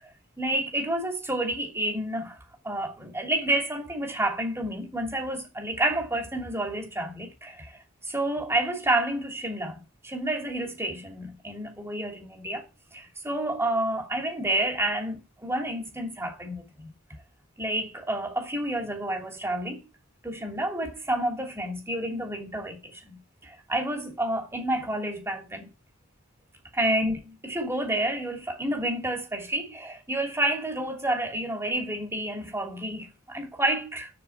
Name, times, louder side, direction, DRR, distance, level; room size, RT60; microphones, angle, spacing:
voice 1, 0.4-12.6 12.9-16.9 17.6-19.9 20.2-23.1 23.4-25.7 26.7-34.1, right 1 dB, 10° right, 2.8 m, -29 dB
7.0 x 6.5 x 7.0 m
head